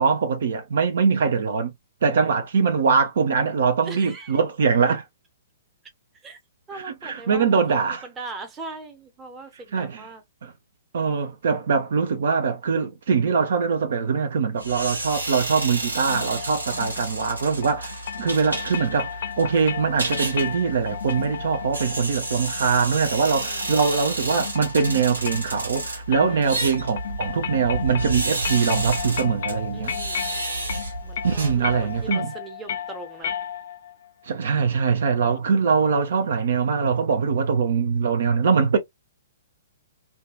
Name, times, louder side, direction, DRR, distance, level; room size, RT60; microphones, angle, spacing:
voice 1, 0.0-1.7 2.0-5.0 6.7-8.0 9.7-10.1 10.4-10.5 10.9-29.9 31.2-32.3 34.2-38.8, right 5 dB, 60° right, 0.6 m, -22 dB
voice 2, 2.1-2.4 3.8-4.4 6.2-6.4 6.7-10.2 23.3-23.7 26.2-26.6 29.7-33.3, right 3 dB, 20° right, 0.8 m, -41 dB
sound 1, 14.6-32.1, right 2 dB, 85° right, 1.4 m, -31 dB
sound 2, 16.1-33.9, left 8 dB, 55° left, 0.5 m, -34 dB
2.7 x 2.3 x 2.4 m
figure-of-eight pair, 115°, 0 cm